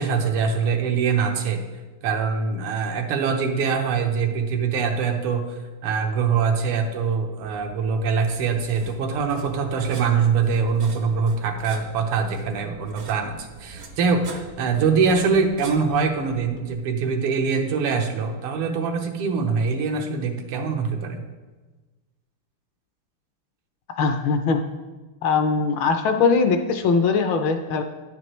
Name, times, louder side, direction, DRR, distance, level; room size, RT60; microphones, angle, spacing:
voice 1, 0.0-1.6 2.0-5.4 5.8-21.2, right 5 dB, 90° right, 4 dB, 1.8 m, -23 dB
sound 1, 7.4-16.7, right 3 dB, 70° right, 0.6 m, -44 dB
voice 2, 24.0-24.6 25.2-27.8, left 4 dB, 70° left, 6 dB, 1.2 m, -21 dB
9.9 x 9.5 x 3.1 m, 1.3 s
omnidirectional pair, 2.4 m